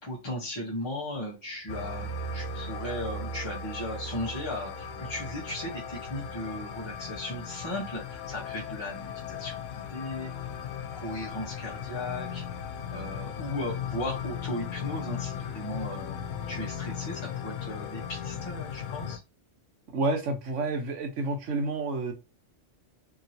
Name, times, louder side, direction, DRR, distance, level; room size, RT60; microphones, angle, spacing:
voice 1, 0.0-10.3 10.9-12.4 12.9-16.2 16.5-19.2, left 1 dB, 25° left, -3 dB, 0.7 m, -36 dB
sound 1, 1.7-19.2, left 5 dB, 90° left, 1.0 m, -37 dB
voice 2, 19.9-22.1, right 3 dB, 75° right, 4 dB, 1.2 m, -29 dB
2.9 x 2.7 x 2.7 m, 0.26 s
omnidirectional pair, 1.3 m